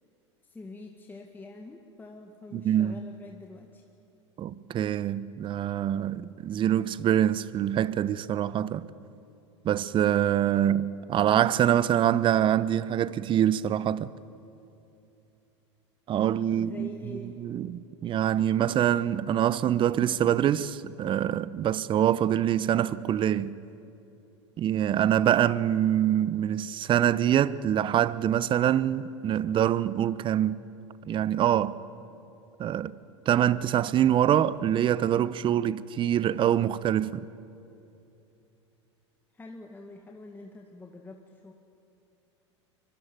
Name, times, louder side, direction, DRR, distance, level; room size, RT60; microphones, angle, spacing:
voice 1, 0.4-3.9 16.5-17.4 39.3-41.5, left 2 dB, 15° left, 1.9 m, -45 dB
voice 2, 2.5-2.9 4.4-8.9 9.6-14.1 16.1-23.5 24.6-30.6 31.0-31.8 32.6-32.9 33.3-37.3, right 10 dB, 35° right, 0.9 m, -25 dB
24.5 x 23.5 x 9.3 m
hypercardioid pair, 95°, 15 cm